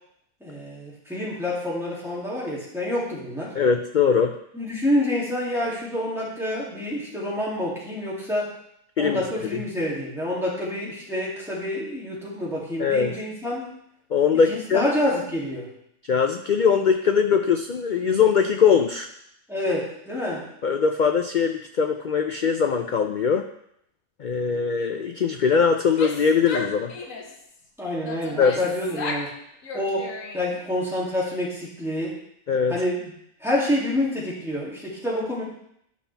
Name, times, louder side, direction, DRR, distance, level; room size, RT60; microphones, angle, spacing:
voice 1, 0.4-3.6 4.5-8.5 9.0-13.7 14.5-15.7 19.5-20.5 27.8-29.3 29.7-32.2 32.7-33.1 33.4-35.4, left 1 dB, ahead, -7 dB, 2.5 m, -27 dB
voice 2, 3.5-4.4 9.0-9.2 9.5-9.6 12.8-13.1 14.1-14.9 16.1-19.1 20.6-23.5 24.2-26.9 28.4-28.6 32.5-32.7, left 6 dB, 90° left, 5 dB, 0.4 m, -21 dB
Female speech woman speaking / Yell, 25.8-27.4 28.0-29.3 29.6-30.6, left 3 dB, 70° left, 1.4 m, -34 dB
12.0 x 5.7 x 3.4 m, 0.74 s
omnidirectional pair, 1.4 m